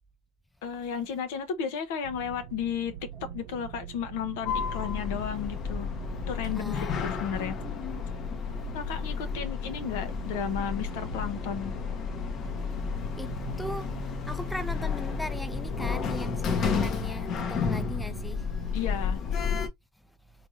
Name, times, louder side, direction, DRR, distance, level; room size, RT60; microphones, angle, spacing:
voice 1, 0.6-2.9 3.2-5.9 6.3-7.6 8.7-11.7 18.7-19.2, left 7 dB, 70° left, 0.9 m, -33 dB
sound 1, 2.0-18.8, right 10 dB, 75° right, 0.6 m, -43 dB
Sliding door, 4.5-19.7, left 6 dB, 45° left, 1.0 m, -32 dB
voice 2, 6.6-7.2 13.2-18.5, left 1 dB, 5° left, 0.5 m, -39 dB
3.6 x 3.3 x 2.6 m
hypercardioid pair, 80°, 0 cm